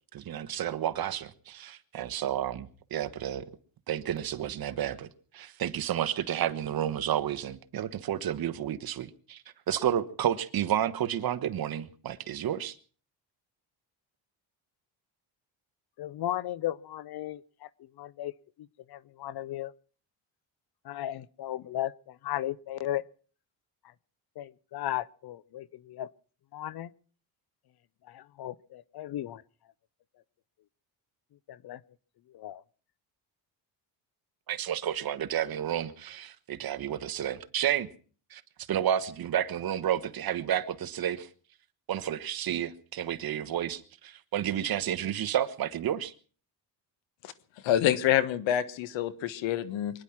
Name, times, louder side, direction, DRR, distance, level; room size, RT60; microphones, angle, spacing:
voice 1, 0.1-3.4 3.9-5.1 5.3-12.8 34.5-37.9 38.3-38.4 38.7-41.3 41.9-46.1, right 10 dB, 55° right, 1.3 m, -31 dB
voice 2, 16.0-18.3 18.6-19.7 20.8-23.0 23.8-23.9 24.4-26.1 26.5-26.9 28.0-29.4 31.5-31.8 32.3-32.6, left 13 dB, 60° left, 0.7 m, -36 dB
voice 3, 47.6-50.0, left 11 dB, 80° left, 1.4 m, -27 dB
24.0 x 10.5 x 5.9 m
cardioid pair, 110°, 44 cm